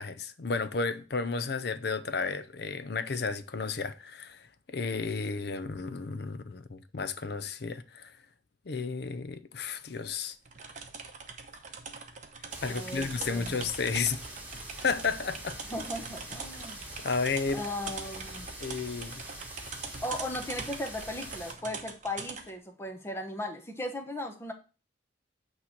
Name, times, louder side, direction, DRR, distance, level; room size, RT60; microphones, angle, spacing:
voice 1, 0.0-8.1 8.7-10.4 12.6-14.2 14.8-15.6 17.0-17.6 18.6-19.2, left 4 dB, 55° left, 0.6 m, -32 dB
sound 1, 10.5-22.5, right 5 dB, 40° right, 0.9 m, -43 dB
sound 2, 12.5-21.5, right 1 dB, 10° right, 2.2 m, -44 dB
voice 2, 12.6-13.6 15.7-16.9 17.5-18.5 20.0-24.5, left 1 dB, 15° left, 0.9 m, -37 dB
8.5 x 3.2 x 5.8 m
head